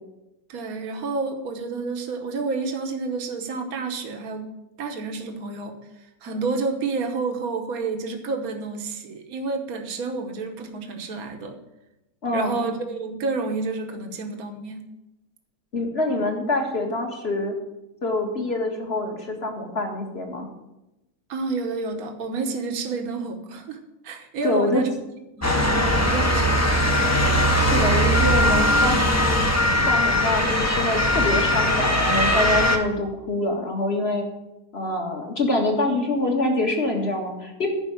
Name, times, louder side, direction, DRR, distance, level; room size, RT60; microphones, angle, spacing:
voice 1, 0.5-5.8 6.2-11.6 12.3-14.9 21.3-23.8 24.0-24.9 25.4-27.2, right 4 dB, 70° right, 5 dB, 1.5 m, -30 dB
voice 2, 12.2-12.5 15.7-17.5 18.0-20.5 24.4-24.8 27.5-29.4 29.9-34.3 34.7-37.7, left 2 dB, 40° left, 1 dB, 2.1 m, -25 dB
Motor vehicle (road) / Siren, 25.4-32.8, equal, 15° left, 0.8 m, -20 dB
10.5 x 5.4 x 8.5 m, 0.93 s
omnidirectional pair, 1.6 m